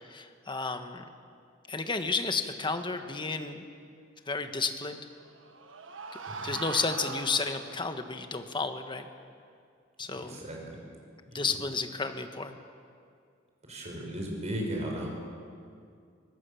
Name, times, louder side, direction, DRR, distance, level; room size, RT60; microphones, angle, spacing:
voice 1, 0.1-1.0 1.7-3.6 4.3-5.0 6.4-9.0 10.0-10.4 11.3-12.6, left 4 dB, 25° left, 7 dB, 1.4 m, -32 dB
Men screaming, 5.1-8.0, right 4 dB, 75° right, 1.4 m, -41 dB
voice 2, 10.1-10.8 11.3-11.6 13.6-15.1, right 1 dB, 35° right, 0 dB, 5.8 m, -36 dB
25.0 x 18.5 x 7.1 m, 2.3 s
head